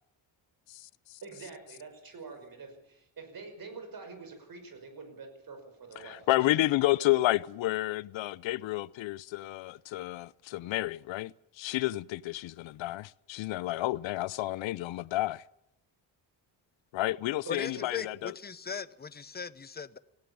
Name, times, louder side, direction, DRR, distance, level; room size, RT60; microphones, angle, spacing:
voice 1, 0.7-1.2 6.0-15.4 16.9-18.3, left 17 dB, 80° left, 0.7 m, -30 dB
voice 2, 1.2-6.3 6.9-7.0 17.6-17.9, right 4 dB, 50° right, 5.8 m, -46 dB
voice 3, 17.5-20.0, left 5 dB, 20° left, 0.8 m, -39 dB
18.0 x 17.0 x 8.6 m
cardioid pair, 125°, 45 cm